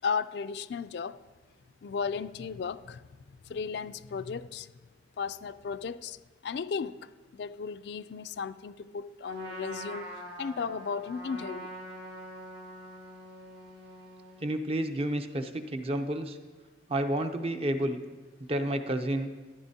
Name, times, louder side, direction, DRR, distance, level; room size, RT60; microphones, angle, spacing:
voice 1, 0.0-1.2 1.8-3.1 3.5-4.7 5.2-6.2 6.4-10.1 10.4-11.7, left 5 dB, 60° left, 0.3 m, -35 dB
Trumpet, 9.2-14.5, right 1 dB, 65° right, 2.1 m, -44 dB
voice 2, 14.4-16.4 16.9-18.0 18.5-19.3, right 1 dB, 30° right, 0.6 m, -30 dB
14.0 x 10.5 x 2.8 m
head